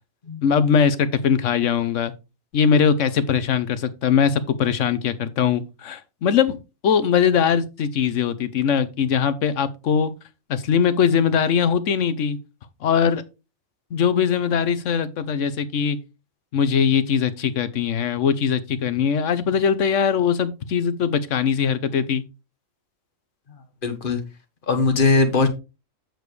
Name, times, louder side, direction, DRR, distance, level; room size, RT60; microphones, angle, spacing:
voice 1, 0.4-2.1 2.5-6.6 6.8-10.1 10.5-12.4 12.8-13.2 13.9-16.0 16.5-22.2, left 7 dB, 70° left, 1.1 m, -21 dB
voice 2, 23.8-24.2 24.7-25.5, left 3 dB, 40° left, 1.3 m, -19 dB
7.8 x 6.8 x 3.2 m
omnidirectional pair, 1.4 m